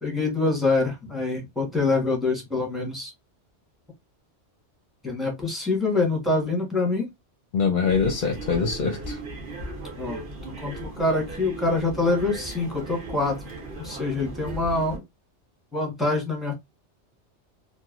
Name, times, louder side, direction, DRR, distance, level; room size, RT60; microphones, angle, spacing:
voice 1, 0.0-3.1 5.0-7.1 10.0-13.4 13.8-15.0 15.7-16.5, left 3 dB, ahead, 1.0 m, -25 dB
voice 2, 7.5-9.2, left 5 dB, 55° left, 0.7 m, -24 dB
sound 1, 7.8-15.0, right 2 dB, 50° right, 1.0 m, -37 dB
3.0 x 2.5 x 2.4 m
omnidirectional pair, 1.2 m